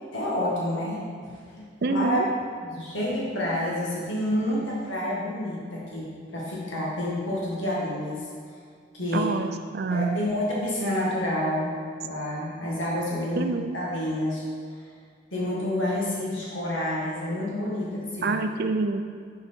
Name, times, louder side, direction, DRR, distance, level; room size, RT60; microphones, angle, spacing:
voice 1, 0.1-1.0 1.5-2.2 2.6-8.3 8.9-9.3 9.9-13.5 13.7-14.4 15.3-18.4, left 1 dB, 85° left, -5 dB, 2.0 m, -29 dB
voice 2, 1.8-2.3 9.1-10.2 13.4-13.8 18.2-19.0, right 3 dB, 55° right, 7 dB, 0.5 m, -26 dB
7.1 x 4.8 x 5.3 m, 2.1 s
head